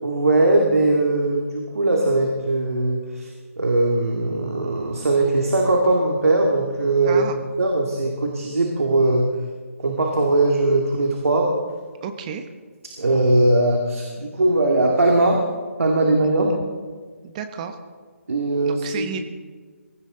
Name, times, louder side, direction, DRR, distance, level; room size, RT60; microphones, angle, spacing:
voice 1, 0.0-3.3 3.6-7.3 7.6-9.3 9.8-11.5 13.0-15.4 15.8-16.5 18.3-19.1, right 2 dB, 75° right, 0 dB, 2.3 m, -20 dB
voice 2, 7.0-7.3 12.0-12.5 17.2-17.8 18.6-19.2, right 7 dB, 30° right, 7 dB, 1.1 m, -32 dB
23.0 x 15.5 x 3.9 m, 1.5 s
figure-of-eight pair, 150°, 8 cm